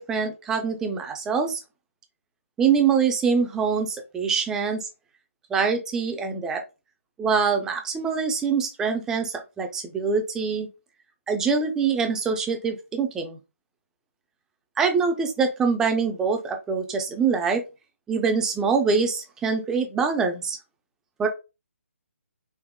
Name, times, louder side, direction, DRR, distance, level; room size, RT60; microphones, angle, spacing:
voice 1, 0.0-1.6 2.6-4.8 5.5-6.6 7.2-10.7 11.3-13.4 14.8-17.6 18.1-20.6 21.2-21.3, right 5 dB, 5° right, 4 dB, 0.3 m, -24 dB
3.6 x 2.9 x 2.2 m, 0.27 s
hypercardioid pair, 155°, 8 cm